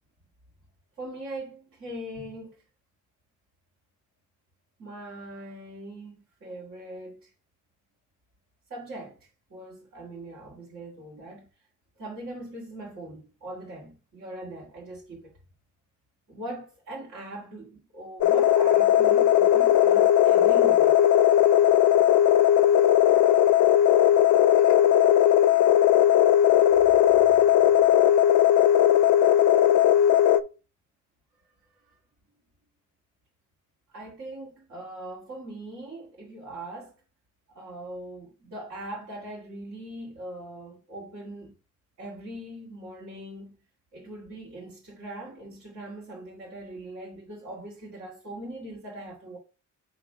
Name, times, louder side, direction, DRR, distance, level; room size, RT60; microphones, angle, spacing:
voice 1, 1.0-2.6 4.8-6.1 6.4-7.3 8.7-11.5 12.0-15.4 16.3-21.0 31.7-32.0 33.9-36.9 37.5-41.5 42.0-43.5 43.9-49.4, right 1 dB, 45° right, 2.2 m, -41 dB
sound 1, 18.2-30.4, left 11 dB, 70° left, 0.5 m, -18 dB
7.5 x 3.0 x 4.5 m
cardioid pair, 160°, 31 cm